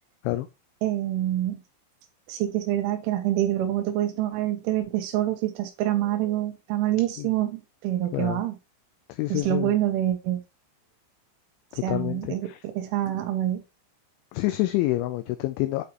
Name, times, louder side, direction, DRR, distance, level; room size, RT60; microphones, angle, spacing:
voice 1, 0.8-1.6 2.3-8.6 9.3-10.4 11.8-13.6, right 13 dB, 80° right, 3.1 m, -26 dB
voice 2, 8.1-8.4 9.1-9.7 11.7-12.6 14.3-15.8, left 17 dB, 85° left, 2.7 m, -27 dB
8.6 x 5.0 x 3.0 m
omnidirectional pair, 5.9 m